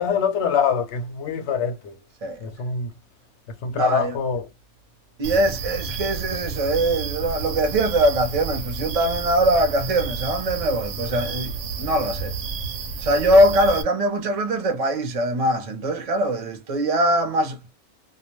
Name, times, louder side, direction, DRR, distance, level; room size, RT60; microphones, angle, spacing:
voice 1, 0.0-2.0 2.4-2.9 3.6-4.5, left 6 dB, 60° left, 0.8 m, -24 dB
voice 2, 3.7-4.1 5.2-12.4 13.0-17.6, right 1 dB, 40° right, 0.5 m, -22 dB
sound 1, 5.2-13.8, right 4 dB, 70° right, 0.8 m, -31 dB
2.4 x 2.2 x 3.0 m
omnidirectional pair, 1.5 m